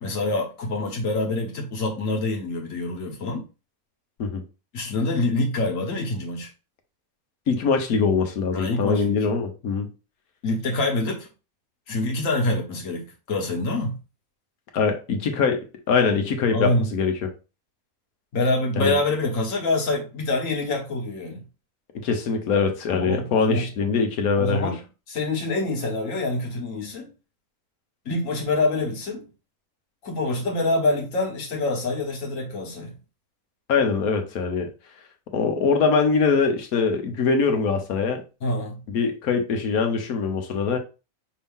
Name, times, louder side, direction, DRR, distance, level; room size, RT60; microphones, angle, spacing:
voice 1, 0.0-3.4 4.7-6.5 8.5-9.2 10.4-11.3 11.9-14.0 16.5-16.9 18.3-21.4 22.9-23.7 24.4-24.8 25.1-27.1 28.0-29.3 30.0-32.9 38.4-38.8, left 2 dB, 65° left, 1.6 m, -26 dB
voice 2, 7.5-9.9 14.7-17.1 18.8-18.9 21.9-24.7 33.7-34.7 35.3-38.2 38.9-40.8, left 5 dB, 80° left, 1.4 m, -23 dB
5.3 x 2.8 x 3.5 m
omnidirectional pair, 1.5 m